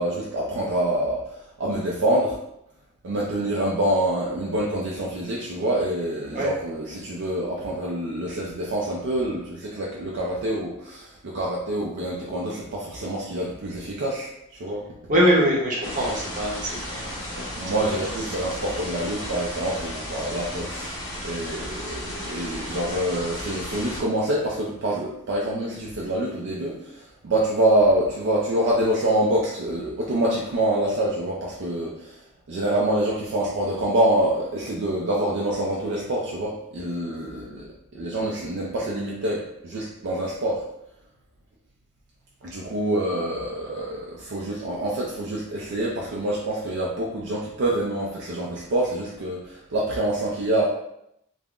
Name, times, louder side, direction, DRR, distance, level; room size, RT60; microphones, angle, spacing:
voice 1, 0.0-2.4 3.0-14.3 14.6-14.8 15.4-15.5 17.6-20.9 21.2-32.2 32.5-37.6 37.9-40.6 42.4-50.6, right 1 dB, 60° right, -4 dB, 0.4 m, -26 dB
voice 2, 15.1-17.5, equal, 35° right, -4 dB, 0.8 m, -23 dB
sound 1, 15.8-24.0, equal, 15° left, 0.7 m, -34 dB
3.5 x 2.0 x 2.4 m, 0.80 s
head